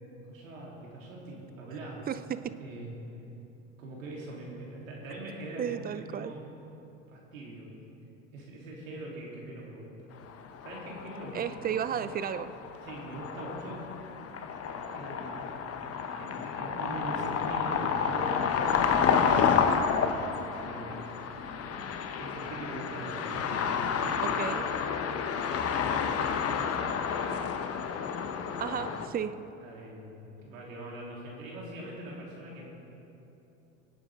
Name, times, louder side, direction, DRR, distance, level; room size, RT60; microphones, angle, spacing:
voice 1, 0.3-2.1 2.6-2.9 3.8-6.5 7.1-7.7 8.3-10.1 10.6-11.5 11.9-12.1 12.8-13.8 14.9-15.5 16.2-19.6 20.3-21.0 21.6-24.2 27.3-27.7 28.7-28.8 29.6-32.7, right 1 dB, 85° right, -4 dB, 3.6 m, -42 dB
voice 2, 2.1-2.6 5.6-6.3 11.3-12.5 24.2-24.7 28.6-29.5, right 9 dB, 25° right, 14 dB, 0.5 m, -33 dB
sound 1, 10.3-29.1, left 6 dB, 35° left, 1.1 m, -30 dB
24.0 x 8.9 x 3.8 m, 3.0 s
hypercardioid pair, 90°, 39 cm